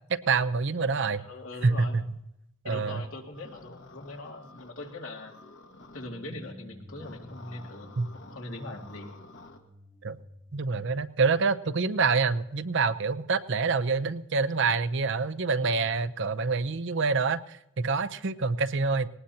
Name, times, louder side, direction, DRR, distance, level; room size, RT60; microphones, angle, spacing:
voice 1, 0.1-1.2 1.6-2.0 2.6-3.1 8.0-8.1 10.0-10.2 10.5-19.1, right 4 dB, 60° right, 13 dB, 0.6 m, -26 dB
voice 2, 1.1-2.0 2.6-5.4 5.9-7.9 8.2-9.1, left 2 dB, 80° left, 1 dB, 2.3 m, -41 dB
sound 1, 3.3-6.1 6.9-9.6, left 2 dB, 60° left, 1.5 m, -51 dB
sound 2, 5.8-11.8, left 1 dB, 10° right, 0.7 m, -52 dB
19.5 x 18.5 x 2.8 m, 0.83 s
head